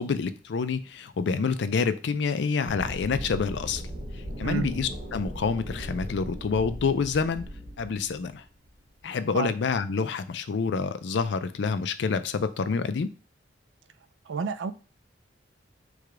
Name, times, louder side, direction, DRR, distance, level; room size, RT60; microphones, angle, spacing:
voice 1, 0.0-3.8 4.4-7.4 7.8-8.4 9.0-13.1, left 5 dB, 65° left, 0.4 m, -27 dB
sound 1, 2.7-9.0, equal, 50° right, 2.0 m, -38 dB
voice 2, 14.3-14.7, right 5 dB, 75° right, 0.4 m, -29 dB
4.7 x 2.3 x 4.8 m
head